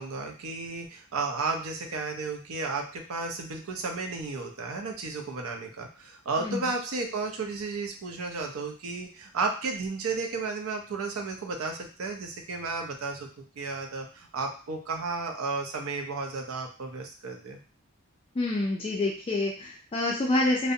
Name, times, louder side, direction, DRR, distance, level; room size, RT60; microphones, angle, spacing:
voice 1, 0.0-13.3 13.6-17.6, right 3 dB, 70° right, 3 dB, 0.5 m, -33 dB
voice 2, 6.4-6.7 18.4-20.7, left 2 dB, 25° left, -2 dB, 0.3 m, -27 dB
2.5 x 2.0 x 2.6 m, 0.39 s
head